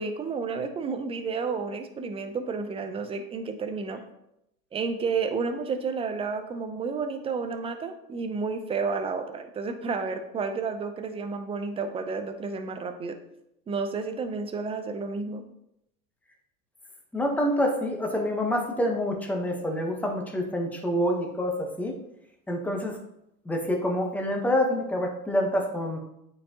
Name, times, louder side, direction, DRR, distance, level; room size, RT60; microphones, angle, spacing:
voice 1, 0.0-4.0 4.7-13.2 13.7-15.4, right 4 dB, 15° right, 7 dB, 0.4 m, -31 dB
voice 2, 17.1-21.9 22.5-23.0 23.5-26.0, equal, 5° left, 2 dB, 0.9 m, -27 dB
8.4 x 4.6 x 2.8 m, 0.81 s
hypercardioid pair, 110°, 48 cm